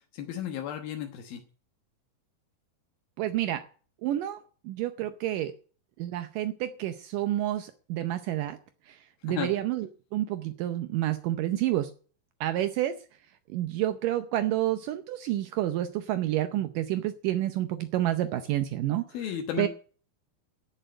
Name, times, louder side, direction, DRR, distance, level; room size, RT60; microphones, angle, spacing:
voice 1, 0.1-1.4 9.3-9.5 19.1-19.7, left 9 dB, 85° left, 4 dB, 3.1 m, -34 dB
voice 2, 3.2-3.6 4.0-4.4 4.6-5.5 6.0-8.6 8.9-11.9 12.4-13.0 13.5-19.0 19.6-19.7, right 13 dB, 75° right, 9 dB, 2.2 m, -29 dB
15.5 x 6.8 x 8.9 m, 0.42 s
omnidirectional pair, 4.1 m